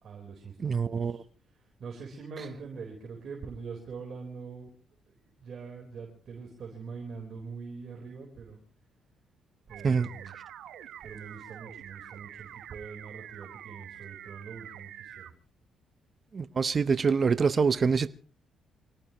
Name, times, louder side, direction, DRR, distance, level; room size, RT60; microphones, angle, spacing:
voice 1, 0.0-1.2 1.5-4.7 5.1-8.6 9.7-10.3 11.0-15.3, right 5 dB, 55° right, 4.1 m, -43 dB
voice 2, 0.6-1.2 9.8-10.1 16.3-18.1, right 5 dB, 40° right, 0.8 m, -25 dB
sound 1, 9.7-15.3, right 11 dB, 80° right, 1.2 m, -46 dB
26.0 x 18.5 x 3.0 m
cardioid pair, 90°, 0 cm